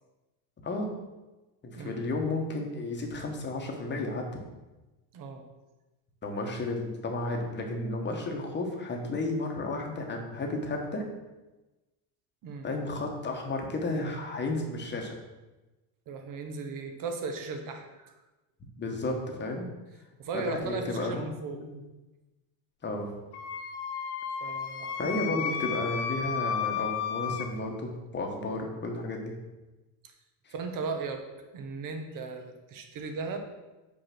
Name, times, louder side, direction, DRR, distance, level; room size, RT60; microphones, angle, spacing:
voice 1, 1.6-4.3 6.2-11.0 12.6-15.2 18.8-19.7 20.3-21.8 22.8-23.1 25.0-29.3 30.4-30.5, left 2 dB, 20° left, 2 dB, 1.3 m, -33 dB
voice 2, 5.1-5.4 12.4-12.7 16.1-18.2 20.2-21.6 24.4-25.5 30.0-30.1 30.5-31.2 31.5-33.4, right 4 dB, 40° right, 5 dB, 1.2 m, -37 dB
Wind instrument woodwind instrument, 23.3-27.5, left 7 dB, 55° left, 0.9 m, -33 dB
5.9 x 4.9 x 6.0 m, 1.1 s
cardioid pair, 135°, 47 cm